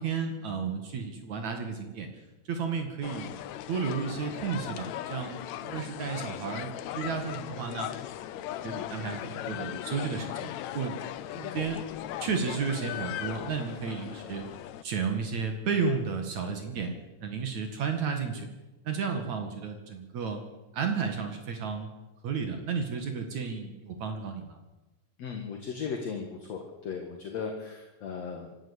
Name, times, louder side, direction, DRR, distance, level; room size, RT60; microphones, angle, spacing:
voice 1, 0.0-2.1 2.5-3.3 3.7-5.4 5.6-7.9 8.3-10.9 11.4-11.8 12.2-14.4 14.8-16.9 17.2-18.5 18.8-20.4 20.7-21.9 22.2-24.6, right 5 dB, 60° right, 5 dB, 3.1 m, -32 dB
sound 1, 3.0-14.8, left 12 dB, 70° left, 1.8 m, -38 dB
voice 2, 25.2-28.6, left 5 dB, 55° left, 3 dB, 2.8 m, -37 dB
26.0 x 12.5 x 8.3 m, 1.1 s
omnidirectional pair, 3.9 m